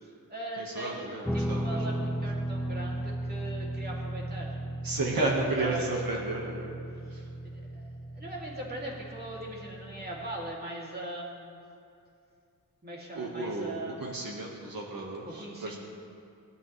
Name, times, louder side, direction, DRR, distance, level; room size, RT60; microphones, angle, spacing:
voice 1, 0.0-4.6 5.3-6.2 7.0-7.1 7.4-7.8 8.1-11.6 12.8-14.3 15.2-15.8, right 1 dB, 25° right, -4 dB, 2.8 m, -40 dB
voice 2, 0.6-1.8 4.8-6.7 7.1-7.2 13.1-15.8, right 2 dB, 75° right, -2 dB, 1.7 m, -33 dB
Guitar, 1.2-10.5, right 1 dB, 5° left, 0.4 m, -36 dB
19.5 x 12.5 x 3.3 m, 2.5 s
wide cardioid pair, 130°, 35 cm